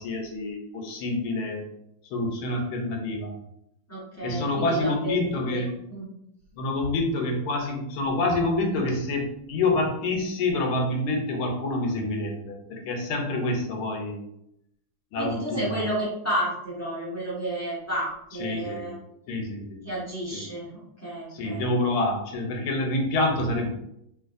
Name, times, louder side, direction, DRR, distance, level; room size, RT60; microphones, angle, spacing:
voice 1, 0.0-1.6 2.1-3.3 4.2-5.7 6.6-14.2 15.1-15.8 18.4-18.9 19.3-19.8 20.3-20.5 21.3-23.7, left 2 dB, 80° left, 1 dB, 1.5 m, -27 dB
voice 2, 3.9-5.6 5.9-6.1 15.1-18.9 19.8-21.7, right 1 dB, 20° left, -8 dB, 0.4 m, -32 dB
3.2 x 3.0 x 2.5 m, 0.77 s
omnidirectional pair, 2.3 m